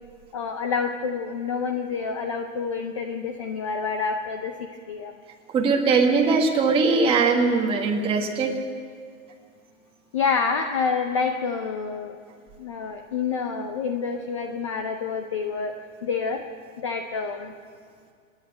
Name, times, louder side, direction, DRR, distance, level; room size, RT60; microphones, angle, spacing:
voice 1, 0.3-4.5 4.9-5.1 10.1-12.2 12.6-15.7 16.0-16.4 16.8-17.5, left 5 dB, 25° left, 5 dB, 0.5 m, -28 dB
voice 2, 5.5-8.5, right 4 dB, 15° right, 0 dB, 1.6 m, -21 dB
27.5 x 10.5 x 9.2 m, 2.1 s
hypercardioid pair, 165°, 41 cm